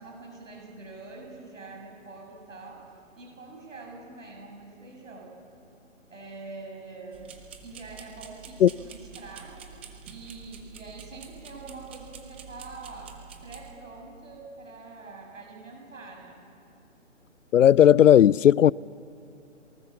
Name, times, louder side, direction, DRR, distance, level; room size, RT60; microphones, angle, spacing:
voice 1, 0.0-2.8 3.2-5.3 6.1-7.3 7.6-9.7 10.1-13.1 13.4-16.5, right 3 dB, 85° right, 7.4 m, -44 dB
sound 1, 7.1-13.7, right 6 dB, 10° right, 0.7 m, -47 dB
voice 2, 17.5-18.7, left 10 dB, 80° left, 0.5 m, -15 dB
28.0 x 23.0 x 7.2 m
hypercardioid pair, 165°, 38 cm